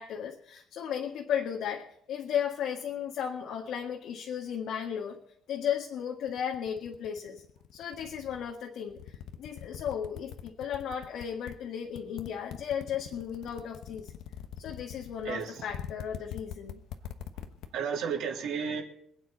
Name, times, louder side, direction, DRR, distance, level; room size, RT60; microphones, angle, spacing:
voice 1, 0.0-5.2 5.5-7.4 7.7-14.1 14.6-16.8, left 8 dB, 65° left, 0 dB, 1.7 m, -35 dB
sound 1, 6.3-8.5 8.9-11.5 11.9-17.7, left 10 dB, 90° left, 1.1 m, -42 dB
voice 2, 15.2-15.6 17.7-18.8, right 6 dB, 85° right, -2 dB, 3.4 m, -32 dB
26.0 x 9.2 x 4.0 m, 0.71 s
cardioid pair, 180°, 0 cm